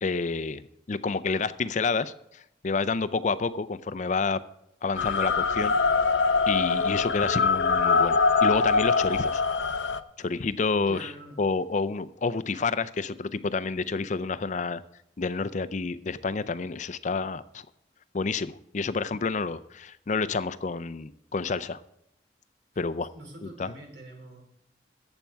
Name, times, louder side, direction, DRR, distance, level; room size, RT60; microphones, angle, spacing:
voice 1, 0.0-0.6 0.9-4.4 4.8-5.8 6.5-9.4 10.2-11.1 11.4-14.8 15.2-17.6 18.1-21.8 22.8-23.1 23.6-23.7, left 4 dB, 40° left, 15 dB, 0.5 m, -29 dB
sound 1, 5.0-10.0, left 4 dB, 90° left, 0.6 m, -23 dB
voice 2, 10.8-11.5 23.1-24.4, right 1 dB, 65° right, 2 dB, 3.5 m, -45 dB
14.5 x 8.9 x 4.6 m, 0.81 s
head